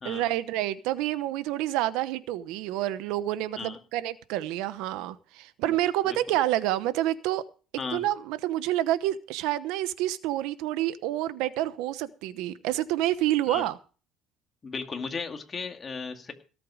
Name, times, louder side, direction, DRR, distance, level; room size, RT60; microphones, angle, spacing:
voice 1, 0.0-7.4 7.9-13.8, right 14 dB, 85° right, 14 dB, 0.9 m, -28 dB
voice 2, 14.6-16.3, left 4 dB, 25° left, 5 dB, 2.2 m, -35 dB
18.0 x 8.4 x 4.9 m, 0.37 s
cardioid pair, 135°, 0 cm